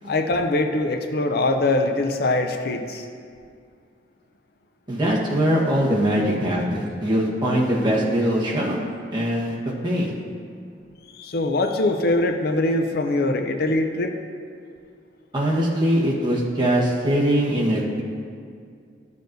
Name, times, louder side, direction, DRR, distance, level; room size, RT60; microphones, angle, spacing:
voice 1, 0.0-3.1 11.1-14.1, left 2 dB, 55° left, 5 dB, 0.5 m, -22 dB
voice 2, 4.9-8.8 9.1-9.5 9.8-10.1 15.3-18.0, equal, 25° right, -4 dB, 1.2 m, -22 dB
13.0 x 6.6 x 2.6 m, 2.2 s
head